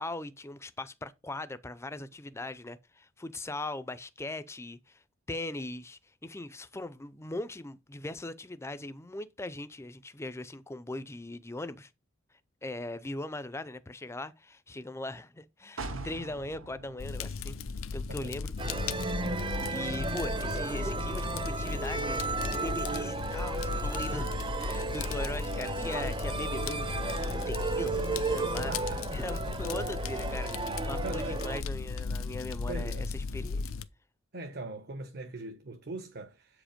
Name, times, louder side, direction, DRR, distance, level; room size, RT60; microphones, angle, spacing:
voice 1, 0.0-11.9 12.6-17.6 17.9-18.5 19.7-28.7 29.1-33.7, left 2 dB, 15° left, 0.5 m, -40 dB
sound 1, 15.8-19.5 19.9-20.0, right 3 dB, 75° right, 1.7 m, -44 dB
Fire, 17.0-33.8, left 4 dB, 90° left, 0.6 m, -36 dB
sound 2, 18.6-31.6, right 3 dB, 25° right, 0.7 m, -34 dB
voice 2, 28.7-29.4 30.9-31.5 32.7-33.1 34.3-36.6, right 2 dB, 55° right, 1.0 m, -42 dB
8.0 x 5.1 x 5.1 m
head